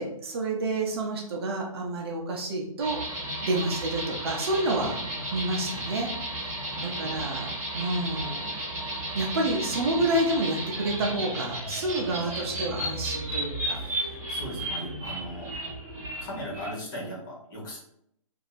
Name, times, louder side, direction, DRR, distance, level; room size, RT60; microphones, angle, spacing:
voice 1, 0.0-3.0 3.4-5.0 5.3-6.1 6.4-6.6 6.8-8.6 9.1-13.8 14.7-15.3, right 2 dB, 45° right, 0 dB, 0.7 m, -29 dB
sound 1, 2.8-16.7, right 1 dB, 10° right, 1.0 m, -34 dB
voice 2, 6.7-7.5 9.6-9.8 12.4-12.6 13.7-15.5 16.2-17.8, equal, 35° left, -4 dB, 1.4 m, -39 dB
2.8 x 2.6 x 4.1 m, 0.71 s
hypercardioid pair, 165°, 18 cm